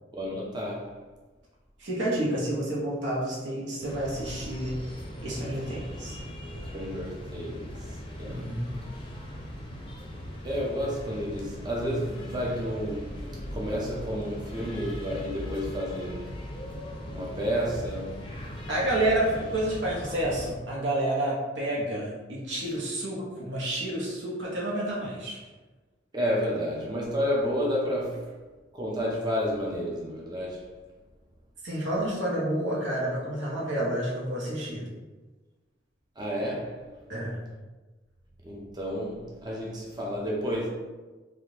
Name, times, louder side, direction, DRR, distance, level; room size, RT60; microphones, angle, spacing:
voice 1, 0.2-1.0 6.7-8.6 10.4-16.3 17.1-18.3 26.1-28.3 28.7-30.7 36.2-36.8 38.4-40.7, equal, 25° right, 0.5 m, -31 dB
voice 2, 1.8-6.2 8.2-8.8 18.7-25.4 31.6-34.8 37.1-37.4, right 1 dB, 90° right, 1.0 m, -29 dB
sound 1, 3.8-20.5, equal, 30° left, 0.5 m, -39 dB
3.4 x 2.4 x 2.8 m
head